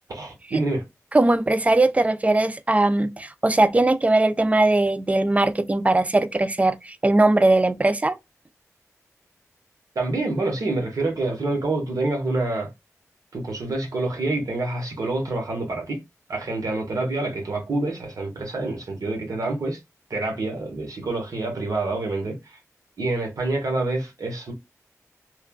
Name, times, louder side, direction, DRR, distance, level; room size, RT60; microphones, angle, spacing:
voice 1, 0.1-0.8 9.9-12.7 13.3-16.0 16.3-19.8 20.1-22.6 23.0-24.5, right 2 dB, 80° right, 1.2 m, -27 dB
voice 2, 1.1-8.2, right 2 dB, 25° right, 0.4 m, -20 dB
3.1 x 2.4 x 2.3 m
cardioid pair, 45°, 6 cm